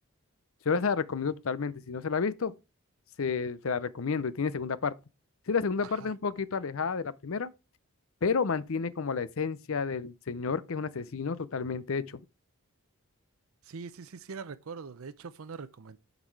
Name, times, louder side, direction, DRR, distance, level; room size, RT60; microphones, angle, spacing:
voice 1, 0.7-2.5 3.2-4.9 5.5-7.5 8.2-12.2, left 5 dB, 65° left, 0.6 m, -30 dB
voice 2, 13.6-16.0, right 5 dB, 70° right, 0.5 m, -43 dB
11.5 x 4.0 x 4.6 m
head